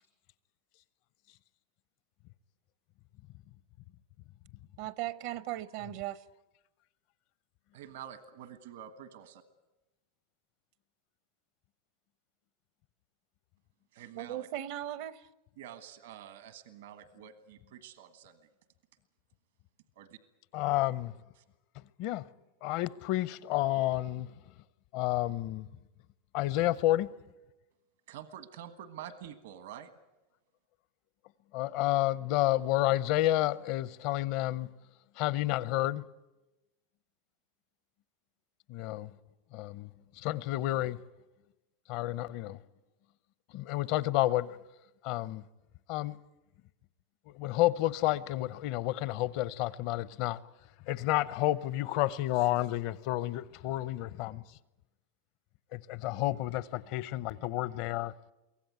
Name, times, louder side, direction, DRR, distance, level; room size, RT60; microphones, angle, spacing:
voice 1, 4.8-6.2 14.2-15.3, right 13 dB, 60° right, 0.7 m, -37 dB
voice 2, 7.7-9.4 13.9-14.5 15.6-18.4 19.9-20.2 21.4-21.5 28.1-29.9, right 10 dB, 80° right, 1.4 m, -47 dB
voice 3, 20.5-21.1 22.0-22.3 22.6-24.3 24.9-25.7 26.3-27.1 31.5-34.7 35.2-36.0 38.7-39.1 39.5-39.9 40.2-41.0 41.9-42.6 43.5-44.6 45.0-45.4 45.9-46.1 47.3-50.4 50.9-54.4 55.7-58.1, left 15 dB, 55° left, 0.7 m, -30 dB
23.5 x 17.0 x 9.4 m
supercardioid pair, 145°, 0 cm